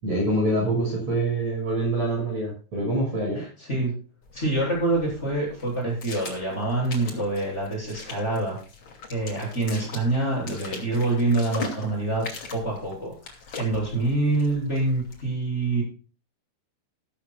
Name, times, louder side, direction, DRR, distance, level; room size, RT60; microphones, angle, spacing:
voice 1, 0.0-3.4, right 1 dB, 35° right, -1 dB, 6.9 m, -25 dB
voice 2, 3.4-4.0 4.3-8.6 9.1-12.3 12.5-15.8, right 2 dB, 15° left, -2 dB, 8.0 m, -26 dB
sound 1, 4.2-15.3, left 4 dB, 35° left, 2.7 m, -41 dB
15.0 x 13.5 x 2.4 m, 0.37 s
omnidirectional pair, 5.4 m